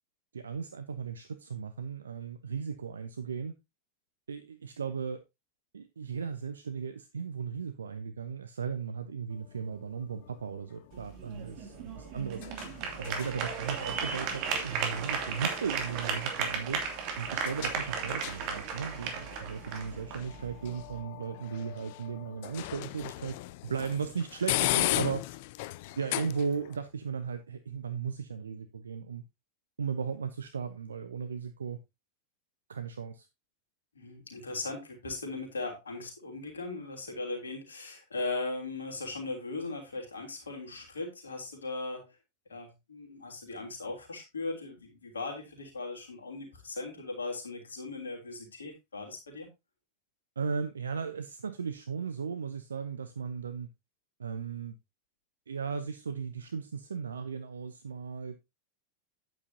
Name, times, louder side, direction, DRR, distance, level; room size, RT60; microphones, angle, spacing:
voice 1, 0.3-3.6 4.3-5.2 5.7-12.5 13.0-16.8 17.2-23.4 23.6-25.3 26.0-29.2 29.8-31.8 32.7-33.3 50.4-53.7 54.2-54.7 55.5-58.4, right 6 dB, 70° right, 0.7 m, -36 dB
sound 1, 9.3-26.8, left 18 dB, 50° left, 0.5 m, -38 dB
sound 2, 10.9-21.0, right 6 dB, 40° right, 2.7 m, -35 dB
voice 2, 33.9-42.1 42.5-49.5, left 3 dB, 70° left, 3.1 m, -38 dB
10.0 x 9.1 x 2.8 m
figure-of-eight pair, 90°, 0 cm